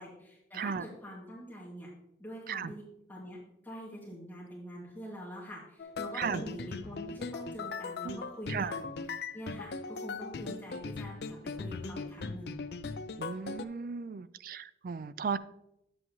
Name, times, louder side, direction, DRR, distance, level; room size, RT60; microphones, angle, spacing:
voice 1, 0.0-1.9 2.2-2.8 3.1-8.9 9.3-12.6, equal, 10° left, -6 dB, 2.3 m, -45 dB
voice 2, 0.5-0.8 2.5-2.7 6.1-6.4 8.0-8.2 8.5-8.8 13.2-15.4, right 5 dB, 50° right, 15 dB, 0.3 m, -35 dB
sound 1, 5.8-13.7, left 4 dB, 65° left, 0.5 m, -39 dB
9.4 x 7.7 x 3.1 m, 0.85 s
head